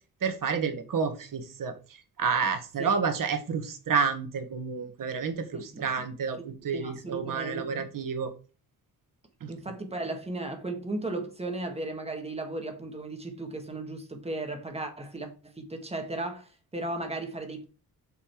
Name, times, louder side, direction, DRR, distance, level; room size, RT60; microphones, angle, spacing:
voice 1, 0.2-8.3 9.4-9.5, right 5 dB, 55° right, 1.5 m, -30 dB
voice 2, 5.5-6.1 6.7-7.9 9.5-17.6, right 2 dB, 15° right, 1.6 m, -36 dB
6.6 x 5.6 x 4.5 m
cardioid pair, 140°, 39 cm